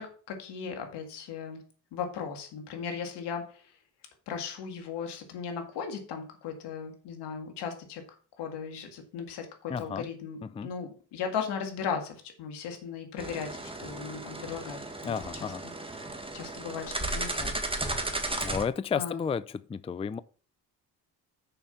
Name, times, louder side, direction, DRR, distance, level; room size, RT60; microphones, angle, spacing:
voice 1, 0.0-1.6 1.9-3.8 4.3-8.0 8.4-15.5 15.8-16.0 16.3-18.4 18.9-19.2, left 6 dB, 85° left, 2.1 m, -37 dB
voice 2, 9.7-10.0 10.6-10.7 15.1-15.6 18.4-19.4 19.7-20.2, left 6 dB, 15° left, 0.4 m, -32 dB
sound 1, 13.2-18.6, right 2 dB, 15° right, 1.7 m, -35 dB
6.7 x 5.7 x 5.8 m
cardioid pair, 75°, 40 cm